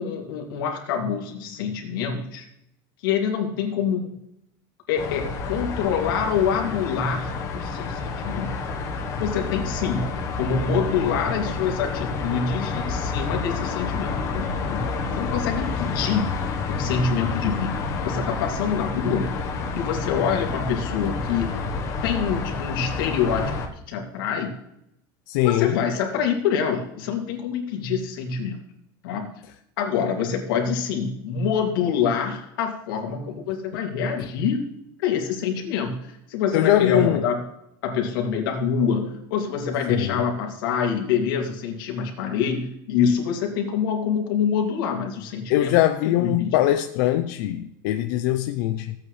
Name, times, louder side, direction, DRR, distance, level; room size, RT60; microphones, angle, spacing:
voice 1, 0.0-2.5 3.0-4.1 4.9-8.6 9.2-14.9 15.2-16.3 16.7-19.3 19.8-21.6 22.0-23.5 23.9-24.5 25.4-28.6 29.0-29.4 29.8-34.7 35.0-37.4 37.8-45.7 46.2-46.6, left 7 dB, 85° left, 2.6 m, -26 dB
sound 1, 5.0-23.7, left 4 dB, 30° left, 1.2 m, -29 dB
voice 2, 25.3-25.7 36.5-37.2 39.9-40.2 45.5-48.9, left 13 dB, 55° left, 0.5 m, -21 dB
15.0 x 8.5 x 3.3 m
supercardioid pair, 175°, 11 cm